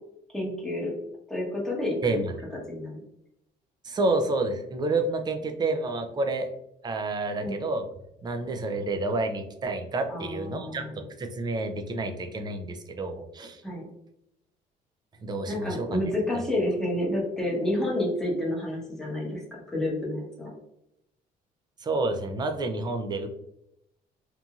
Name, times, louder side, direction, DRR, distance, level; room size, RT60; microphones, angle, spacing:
voice 1, 0.3-0.9 1.3-2.2 2.7-3.0 7.4-7.6 10.1-11.0 13.6-13.9 15.5-19.4 19.7-20.5, left 1 dB, 5° left, -4 dB, 0.9 m, -29 dB
voice 2, 2.0-2.3 3.8-6.5 6.8-7.9 8.2-13.6 15.2-16.0 21.8-23.3, right 2 dB, 25° right, 6 dB, 0.4 m, -29 dB
2.9 x 2.5 x 2.3 m, 0.81 s
cardioid pair, 110°, 17 cm